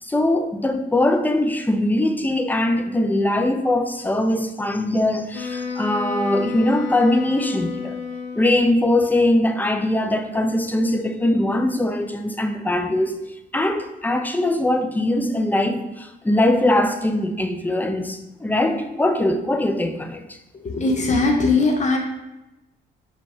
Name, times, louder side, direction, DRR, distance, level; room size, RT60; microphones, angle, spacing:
voice 1, 0.0-8.0 8.4-20.2, left 1 dB, 10° left, 6 dB, 0.3 m, -21 dB
Wind instrument woodwind instrument, 5.3-8.9, left 5 dB, 75° left, 0.6 m, -31 dB
voice 2, 20.7-22.0, left 3 dB, 35° left, 1 dB, 0.9 m, -19 dB
4.9 x 2.3 x 3.5 m, 0.97 s
cardioid pair, 90°, 20 cm